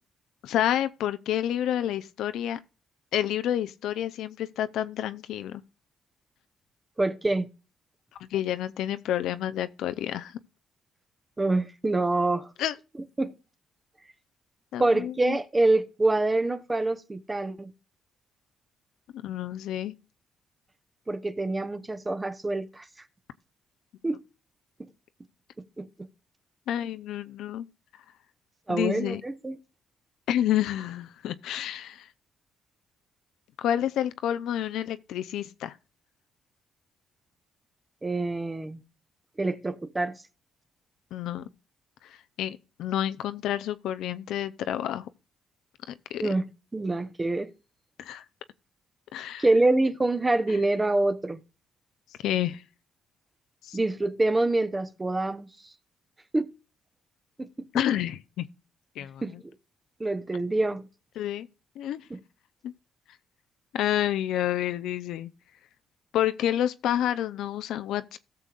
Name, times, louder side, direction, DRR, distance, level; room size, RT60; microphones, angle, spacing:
voice 1, 0.4-2.6 3.1-5.6 8.2-10.4 12.6-12.8 14.7-15.4 19.2-19.9 26.7-27.7 28.7-29.2 30.3-32.1 33.6-35.8 41.1-41.5 42.0-45.1 45.9-46.2 48.0-48.2 49.1-49.5 52.2-52.6 53.6-53.8 57.7-58.4 59.0-59.4 61.2-61.5 61.8-62.0 62.6-62.7 63.7-65.3 66.1-68.2, left 11 dB, 85° left, 0.5 m, -29 dB
voice 2, 7.0-7.5 11.4-12.5 13.2-13.3 14.8-17.7 21.1-22.8 24.0-24.2 25.8-26.1 28.7-29.6 38.0-38.8 39.4-40.2 46.2-46.4 46.7-47.5 49.4-51.4 53.7-55.5 56.3-56.5 57.4-57.5 59.2-59.3 60.0-60.9 62.1-62.2, right 2 dB, 20° right, 0.9 m, -26 dB
17.5 x 6.8 x 2.4 m
cardioid pair, 90°, 0 cm